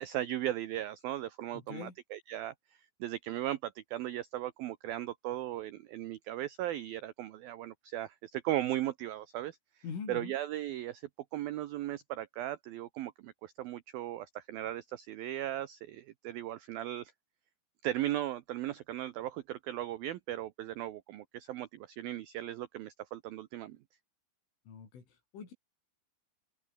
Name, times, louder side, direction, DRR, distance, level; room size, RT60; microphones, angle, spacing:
voice 1, 0.0-2.5 3.0-9.6 10.1-17.1 17.8-23.8, right 13 dB, 80° right, 2.1 m, -37 dB
voice 2, 1.5-1.9 9.8-10.3 24.7-25.5, left 6 dB, 85° left, 8.3 m, -43 dB
open air
omnidirectional pair, 5.5 m